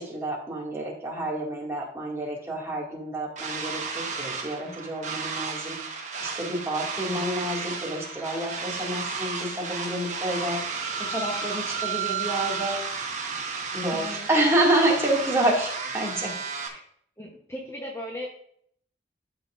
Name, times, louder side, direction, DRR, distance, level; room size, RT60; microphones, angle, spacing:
voice 1, 0.0-12.8 13.7-15.7 15.9-16.4, right 1 dB, 15° right, -3 dB, 2.4 m, -28 dB
sound 1, 3.4-16.7, right 5 dB, 40° right, 1.5 m, -33 dB
voice 2, 13.9-14.3 16.5-16.8 17.2-18.3, equal, 15° left, -2 dB, 1.1 m, -38 dB
13.0 x 5.9 x 2.6 m, 0.65 s
head